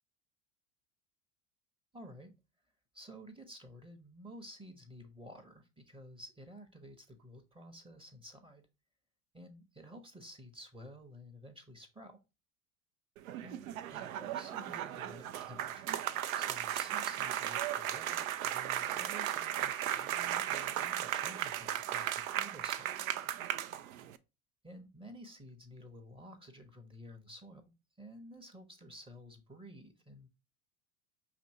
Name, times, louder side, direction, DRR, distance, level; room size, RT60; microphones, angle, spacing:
voice 1, 1.9-2.3 2.9-8.6 9.3-12.2 13.4-13.6 13.9-16.0 16.3-23.3 24.6-30.3, equal, 15° right, 6 dB, 0.7 m, -52 dB
sound 1, 13.2-24.2, right 11 dB, 85° right, 0.5 m, -36 dB
5.8 x 2.7 x 2.7 m, 0.27 s
hypercardioid pair, 90°, 41 cm